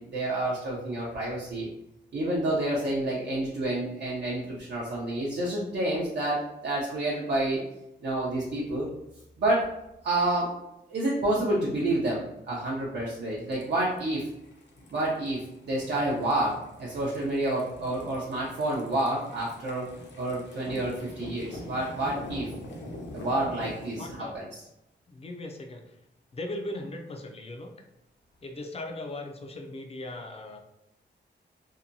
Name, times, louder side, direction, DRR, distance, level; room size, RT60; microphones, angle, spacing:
voice 1, 0.0-1.7 2.1-7.6 8.0-8.9 9.4-9.7 10.0-10.5 10.9-14.3 14.9-15.4 15.7-19.9 20.2-22.5 23.1-24.1 24.3-24.6, right 1 dB, 65° right, -5 dB, 0.6 m, -29 dB
sound 1, 13.3-24.1, left 1 dB, 75° left, 0.6 m, -44 dB
voice 2, 23.9-24.4 25.1-25.9 26.3-27.7 28.4-30.6, left 1 dB, 35° left, 3 dB, 0.4 m, -38 dB
2.8 x 2.2 x 2.5 m, 0.87 s
wide cardioid pair, 140°, 19 cm